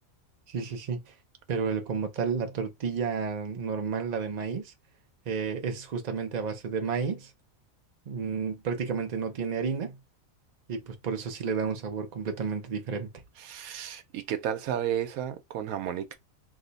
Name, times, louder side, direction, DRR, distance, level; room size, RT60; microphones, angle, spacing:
voice 1, 0.5-1.1 1.5-4.7 5.3-7.3 8.1-10.0 10.7-13.1, right 5 dB, 50° right, 0.5 m, -31 dB
voice 2, 13.4-16.2, right 10 dB, 85° right, 1.1 m, -32 dB
3.0 x 2.1 x 3.8 m
omnidirectional pair, 1.5 m